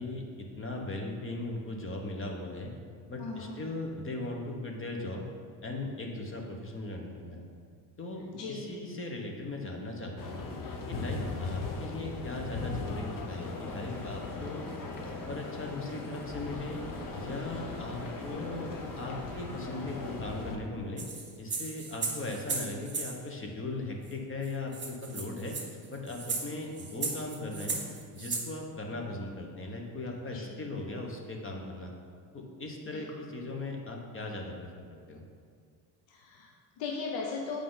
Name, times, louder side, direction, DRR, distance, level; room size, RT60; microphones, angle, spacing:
voice 1, 0.0-2.7 3.1-5.2 5.6-7.4 8.0-10.5 10.9-14.7 15.0-16.8 17.1-21.1 21.4-25.6 25.9-27.8 28.1-31.9 32.3-34.7 35.1-35.2, left 2 dB, 30° left, 1 dB, 1.2 m, -38 dB
voice 2, 3.2-3.6 8.3-8.7 30.3-30.6 32.9-33.0 36.1-37.6, left 4 dB, 80° left, 0 dB, 0.9 m, -38 dB
sound 1, 10.2-20.6, left 3 dB, 50° left, 0.9 m, -38 dB
Engine, 13.3-20.3, left 1 dB, 5° left, 1.0 m, -48 dB
sound 2, 21.0-23.1 24.1-24.2 24.4-24.5 24.7-28.5, right 4 dB, 25° right, 1.6 m, -36 dB
7.5 x 5.0 x 4.0 m, 2.2 s
supercardioid pair, 95°, 43 cm